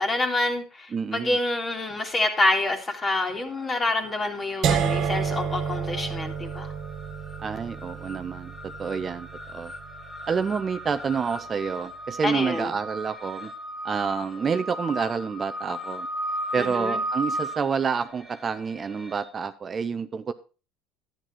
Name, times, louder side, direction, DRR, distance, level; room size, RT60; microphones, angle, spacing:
voice 1, 0.0-6.7 12.2-12.7 16.6-17.0, left 2 dB, 25° left, 5 dB, 2.3 m, -27 dB
voice 2, 0.9-1.4 7.4-9.7 10.3-13.5 13.8-16.1 16.5-20.3, right 6 dB, 30° right, 10 dB, 0.6 m, -28 dB
sound 1, 1.7-2.3 2.6-19.2, equal, 5° left, 2.1 m, -37 dB
sound 2, 4.6-10.6, right 7 dB, 55° right, 1.5 m, -30 dB
11.0 x 9.1 x 4.2 m, 0.33 s
supercardioid pair, 95°, 0 cm